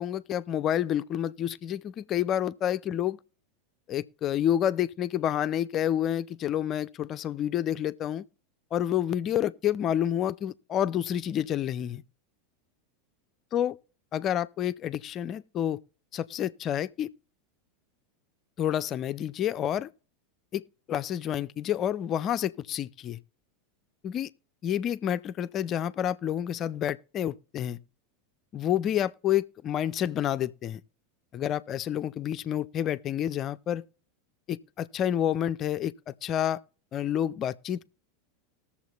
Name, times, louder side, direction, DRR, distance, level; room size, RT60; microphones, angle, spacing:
voice 1, 0.0-3.2 3.9-8.3 8.7-12.0 13.5-13.8 14.1-15.8 16.1-17.1 18.6-19.9 20.5-20.6 20.9-23.2 24.0-24.3 24.6-27.8 28.5-30.8 31.3-33.8 34.5-36.6 36.9-37.9, left 10 dB, 35° left, 0.4 m, -29 dB
20.5 x 7.1 x 2.3 m
figure-of-eight pair, 85°, 0 cm